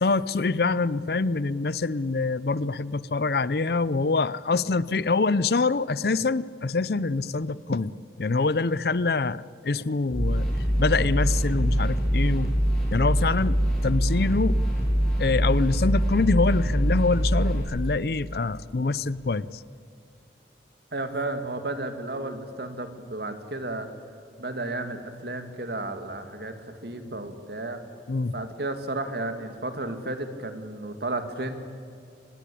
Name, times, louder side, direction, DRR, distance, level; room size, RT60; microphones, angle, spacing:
voice 1, 0.0-7.9 8.2-10.5 10.8-12.5 12.9-14.6 15.2-19.6 28.1-28.3, left 3 dB, 60° left, 19 dB, 0.6 m, -25 dB
sound 1, 10.1-17.6, equal, ahead, 7.8 m, -24 dB
voice 2, 20.9-23.9 24.4-27.8 28.3-31.6, right 2 dB, 65° right, 8 dB, 2.1 m, -33 dB
26.0 x 20.5 x 8.5 m, 2.4 s
head